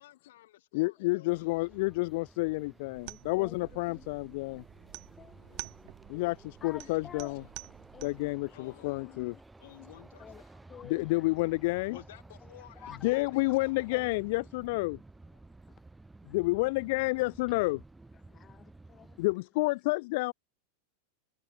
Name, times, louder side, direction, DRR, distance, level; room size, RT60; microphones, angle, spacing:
voice 1, 0.0-1.7 3.5-3.9 5.3-5.8 8.5-9.1 9.6-10.6 11.9-13.5 13.8-14.2, left 15 dB, 75° left, 6.0 m, -54 dB
voice 2, 0.7-4.6 6.1-7.4 8.0-9.3 10.8-12.0 13.0-15.0 16.3-17.8 19.2-20.3, left 24 dB, 60° left, 0.8 m, -30 dB
sound 1, 1.3-19.3, right 2 dB, 5° right, 1.4 m, -54 dB
sound 2, 2.9-8.4, right 29 dB, 50° right, 1.2 m, -49 dB
voice 3, 3.0-3.6 3.9-4.4 4.8-5.4 6.6-7.3 7.9-8.1 8.9-9.1 10.2-10.4 10.7-11.1 11.9-12.0 12.8-13.0 13.9-14.0 18.3-19.2, left 8 dB, 20° left, 0.8 m, -50 dB
supercardioid pair, 140°, 0 cm